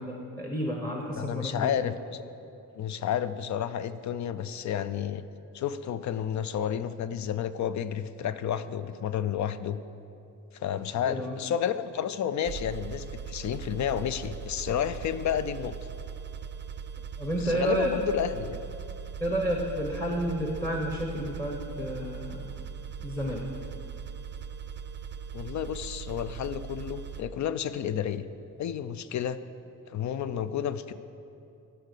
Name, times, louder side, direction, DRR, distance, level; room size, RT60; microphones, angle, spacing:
voice 1, 0.0-1.8 11.1-11.4 17.2-17.9 19.2-22.5 23.0-23.4, equal, 10° left, -1 dB, 0.9 m, -31 dB
voice 2, 1.2-2.2 2.8-5.2 5.5-9.8 10.5-15.8 17.4-18.6 25.3-28.2 28.6-29.4 29.9-30.9, left 9 dB, 60° left, 13 dB, 0.5 m, -31 dB
sound 1, 12.4-27.2, right 7 dB, 35° right, 0.5 m, -40 dB
12.0 x 5.7 x 6.5 m, 2.9 s
wide cardioid pair, 145°, 33 cm